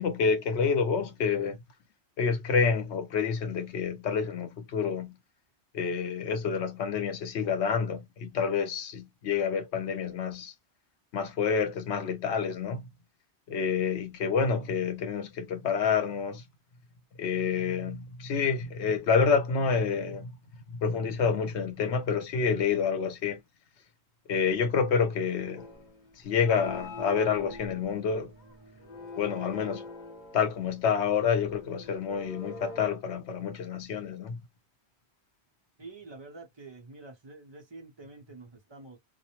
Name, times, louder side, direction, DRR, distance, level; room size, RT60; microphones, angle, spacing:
voice 1, 0.0-1.6 2.2-5.2 5.7-10.5 11.1-12.9 13.5-16.4 17.2-20.3 20.7-23.4 24.3-25.6 26.2-28.3 29.2-29.8 30.3-34.4, left 6 dB, 85° left, 1.0 m, -28 dB
sound 1, 25.6-32.9, left 2 dB, 45° left, 0.9 m, -44 dB
voice 2, 35.8-39.0, right 3 dB, 30° right, 0.7 m, -47 dB
2.4 x 2.0 x 2.9 m
omnidirectional pair, 1.1 m